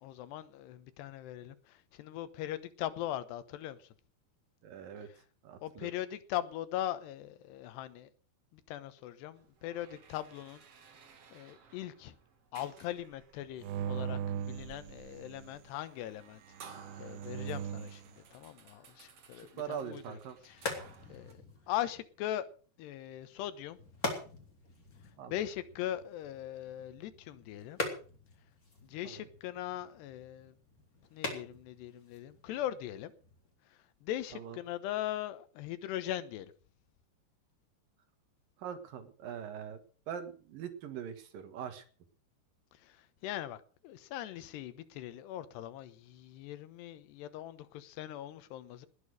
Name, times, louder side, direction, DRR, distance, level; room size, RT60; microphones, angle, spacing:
voice 1, 0.0-3.9 5.1-5.2 5.6-8.1 8.5-10.6 11.3-12.2 12.5-16.4 16.7-20.2 20.4-20.8 21.1-21.4 21.7-22.5 22.8-23.8 25.3-27.8 28.8-30.6 31.1-33.1 34.0-36.5 42.8-48.9, left 13 dB, 80° left, 3.2 m, -40 dB
voice 2, 4.6-5.1 5.4-5.9 19.3-20.4 25.2-25.4 29.0-29.2 34.3-34.6 38.6-39.8 40.1-41.8, right 8 dB, 65° right, 2.9 m, -42 dB
sound 1, 9.3-21.3, right 6 dB, 45° right, 2.4 m, -57 dB
sound 2, 13.6-15.6 16.6-18.1, right 8 dB, 85° right, 3.1 m, -39 dB
sound 3, 20.1-33.5, left 2 dB, 20° left, 3.5 m, -44 dB
19.5 x 8.6 x 6.5 m
omnidirectional pair, 4.9 m